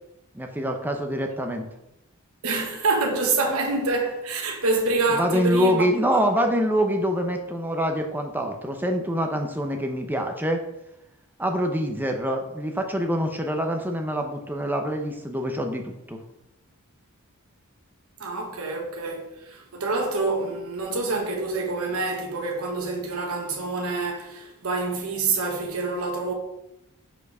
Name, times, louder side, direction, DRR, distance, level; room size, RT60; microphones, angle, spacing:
voice 1, 0.3-1.7 5.1-10.6 11.4-16.2, equal, 10° right, 0.7 m, -25 dB
voice 2, 2.4-6.2 18.2-26.3, right 3 dB, 75° right, 1.2 m, -27 dB
5.2 x 4.5 x 5.3 m
head